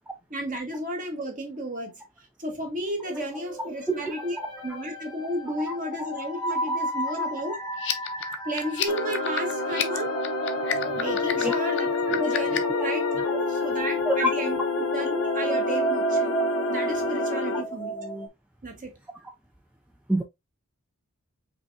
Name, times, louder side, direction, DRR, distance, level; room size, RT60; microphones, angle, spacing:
voice 1, 0.3-2.0 2.4-4.4 4.6-7.6 8.4-10.1 10.9-11.9 12.2-16.3 16.7-17.9 18.6-19.0, right 1 dB, 35° right, 1.5 m, -33 dB
sound 1, 3.0-18.3, right 2 dB, 20° left, 1.0 m, -33 dB
sound 2, 7.7-12.8, left 10 dB, 55° left, 0.7 m, -31 dB
sound 3, 8.9-17.6, left 3 dB, 90° left, 1.2 m, -28 dB
voice 2, 11.4-11.6 12.1-12.2 14.1-14.3 20.1-20.2, equal, 5° right, 0.5 m, -24 dB
5.4 x 3.4 x 2.8 m
head